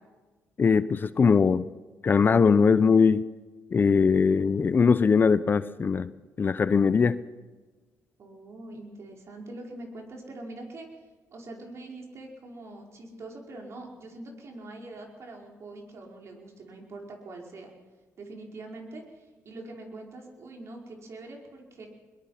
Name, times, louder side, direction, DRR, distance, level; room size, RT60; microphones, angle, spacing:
voice 1, 0.6-1.6 2.0-3.2 3.7-6.1 6.4-7.2, left 5 dB, 35° left, 15 dB, 0.7 m, -21 dB
voice 2, 8.2-11.0 11.3-17.7 18.2-21.9, right 2 dB, 50° right, 1 dB, 5.0 m, -43 dB
22.0 x 21.5 x 5.9 m, 1.3 s
cardioid pair, 105°, 6 cm